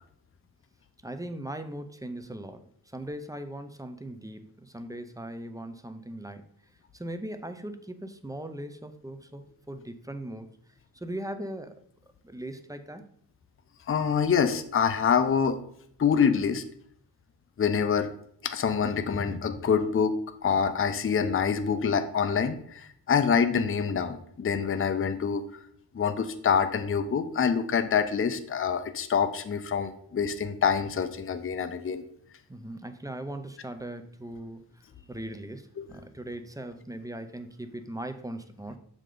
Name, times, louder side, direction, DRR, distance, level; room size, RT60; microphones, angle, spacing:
voice 1, 1.0-6.4 6.9-10.5 10.9-11.8 12.2-13.1 32.5-34.6 35.1-38.8, right 1 dB, 10° right, 8 dB, 0.5 m, -39 dB
voice 2, 13.9-15.6 16.0-16.6 17.6-18.1 18.4-20.2 20.4-25.4 25.9-32.0 35.8-35.9, left 6 dB, 35° left, 9 dB, 0.5 m, -26 dB
6.6 x 5.0 x 3.8 m, 0.67 s
wide cardioid pair, 100°, 40 cm